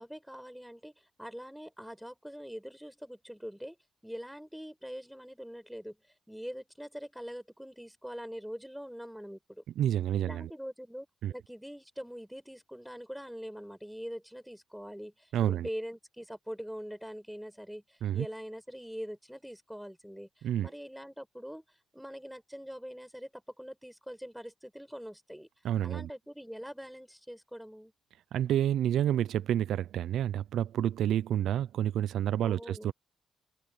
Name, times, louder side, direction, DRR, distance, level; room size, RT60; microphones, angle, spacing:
voice 1, 0.0-3.8 4.0-6.0 6.3-9.6 10.2-21.6 21.9-25.5 25.8-27.9 32.4-32.9, equal, ahead, 5.6 m, -43 dB
voice 2, 9.8-10.5 11.2-11.3 15.3-15.7 18.0-18.3 20.4-20.7 25.6-26.1 28.3-32.9, right 11 dB, 75° right, 0.5 m, -29 dB
open air
supercardioid pair, 65°, 0 cm